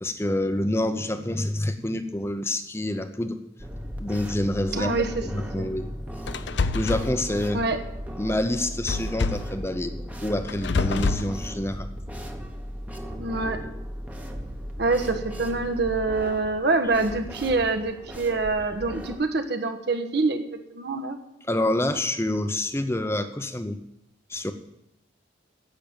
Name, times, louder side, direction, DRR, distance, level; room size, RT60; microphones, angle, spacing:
voice 1, 0.0-3.4 4.0-4.9 5.3-5.9 6.7-7.6 8.2-11.9 21.5-23.8 24.3-24.5, left 1 dB, 15° left, 8 dB, 0.8 m, -27 dB
sound 1, 3.6-19.2, equal, 5° right, 1.1 m, -36 dB
voice 2, 4.7-5.2 5.6-5.7 7.5-7.8 13.2-13.6 14.8-20.4 20.7-21.2, right 3 dB, 55° right, 5 dB, 1.3 m, -25 dB
sound 2, 6.3-7.1 8.9-9.6 10.5-11.3, left 3 dB, 60° left, 0.6 m, -26 dB
10.5 x 7.9 x 8.9 m, 0.89 s
head